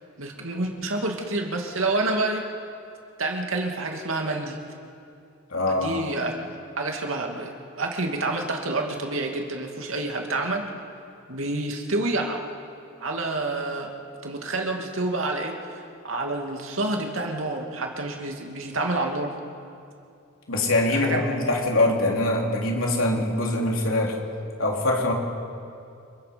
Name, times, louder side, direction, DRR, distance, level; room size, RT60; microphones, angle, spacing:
voice 1, 0.2-2.4 3.2-4.6 5.7-6.3 6.8-10.7 11.3-12.4 13.0-13.9 14.2-19.3 20.9-21.2, right 2 dB, 85° right, 2 dB, 2.5 m, -28 dB
voice 2, 5.5-6.0 20.5-24.2 24.6-25.1, left 2 dB, 90° left, 0 dB, 3.5 m, -23 dB
29.0 x 22.0 x 5.3 m, 2.5 s
head